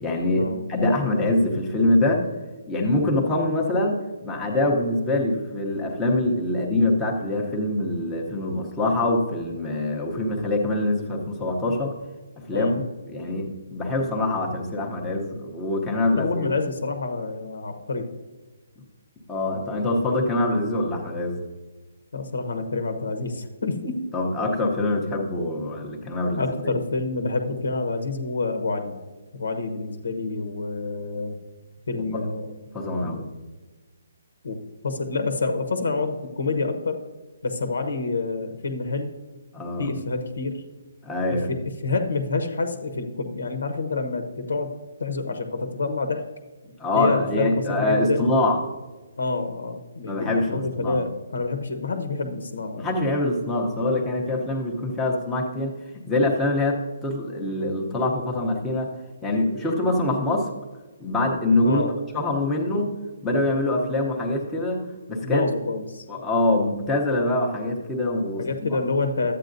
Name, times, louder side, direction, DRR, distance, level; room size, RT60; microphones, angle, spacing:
voice 1, 0.0-2.3 2.7-11.9 12.4-12.7 13.1-16.5 19.3-21.4 24.1-26.7 32.1-32.2 32.7-33.3 39.5-39.9 41.0-41.5 46.8-48.6 50.0-51.0 52.8-55.7 56.1-58.9 59.2-60.5 61.0-62.9 63.2-65.5 66.1-68.8, left 2 dB, 5° left, -2 dB, 0.8 m, -24 dB
voice 2, 16.2-18.1 22.1-24.0 26.4-29.0 29.3-31.4 31.9-32.5 33.0-33.2 34.4-34.6 34.8-37.0 37.4-39.1 39.8-40.6 41.3-44.7 45.0-46.3 46.9-48.3 49.2-52.9 61.6-62.0 65.2-66.0 68.4-69.3, left 3 dB, 80° left, 6 dB, 1.0 m, -28 dB
12.0 x 8.5 x 2.6 m, 1.3 s
hypercardioid pair, 175°, 0 cm